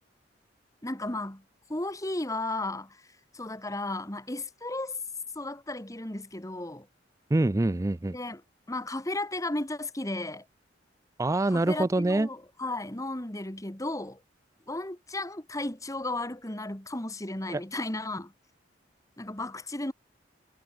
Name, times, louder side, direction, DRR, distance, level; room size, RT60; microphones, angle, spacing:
voice 1, 0.8-1.4 1.7-3.0 3.3-5.0 5.4-6.9 8.1-8.4 8.7-10.4 11.5-14.2 14.7-18.3 19.2-19.9, left 2 dB, 20° left, 2.0 m, -34 dB
voice 2, 7.3-8.1 11.2-12.3 17.5-17.6, right 2 dB, 15° right, 0.4 m, -25 dB
head